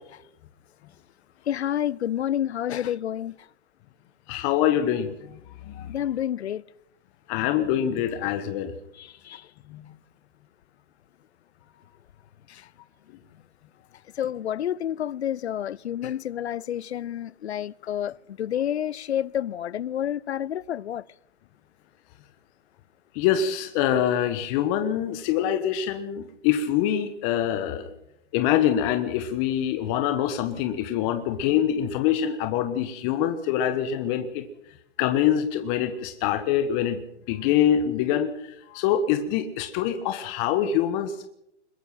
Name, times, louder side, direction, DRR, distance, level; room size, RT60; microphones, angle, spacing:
voice 1, 1.5-3.3 5.9-6.6 8.9-9.5 12.5-12.7 14.2-21.0, left 10 dB, 65° left, 0.8 m, -29 dB
voice 2, 4.3-5.1 5.7-5.9 7.3-8.7 9.7-9.8 23.1-27.9 28.3-34.4 35.0-37.0 37.3-41.3, left 10 dB, 30° left, 1.4 m, -25 dB
22.0 x 21.5 x 5.8 m
hypercardioid pair, 140°, 35 cm